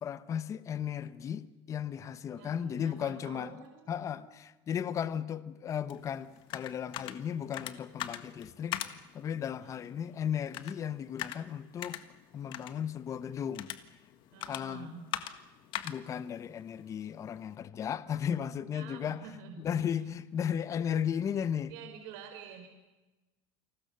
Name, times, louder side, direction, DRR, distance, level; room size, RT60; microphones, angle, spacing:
voice 1, 0.0-3.6 3.9-12.0 12.3-13.7 14.5-15.0 15.8-19.3 19.6-21.7, left 8 dB, 30° left, 1.0 m, -35 dB
voice 2, 2.4-3.8 4.1-4.3 9.6-9.8 14.3-15.0 18.7-19.6 21.7-22.7, right 7 dB, 80° right, 4.6 m, -47 dB
sound 1, 5.9-17.6, left 13 dB, 50° left, 1.5 m, -43 dB
29.0 x 20.5 x 6.9 m
cardioid pair, 155°, 11 cm